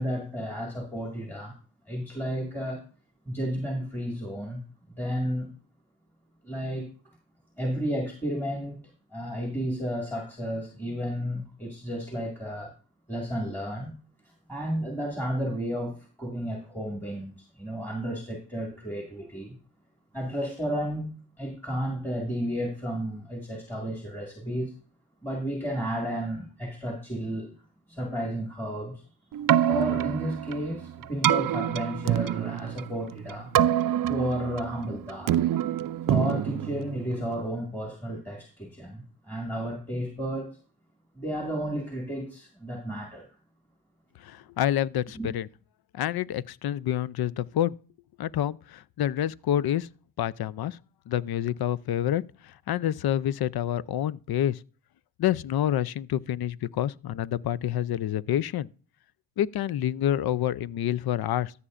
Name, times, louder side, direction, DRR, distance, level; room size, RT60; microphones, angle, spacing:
voice 1, 0.0-1.6 1.9-2.8 3.3-4.6 4.9-5.5 6.4-6.9 7.6-8.8 9.1-12.7 13.1-13.9 14.3-19.6 20.1-24.7 25.2-27.5 27.9-29.1 29.6-33.5 34.1-35.4 36.1-40.6 41.2-43.3 45.2-45.3, equal, 5° left, 1.9 m, -32 dB
Keyboard (musical), 29.3-37.5, right 11 dB, 55° right, 0.5 m, -27 dB
voice 2, 44.2-45.5 45.9-47.7 48.2-49.9 50.2-50.8 51.1-52.2 52.7-54.6 55.2-58.7 59.4-61.5, left 11 dB, 65° left, 0.5 m, -27 dB
14.0 x 6.9 x 2.5 m
cardioid pair, 65°, 41 cm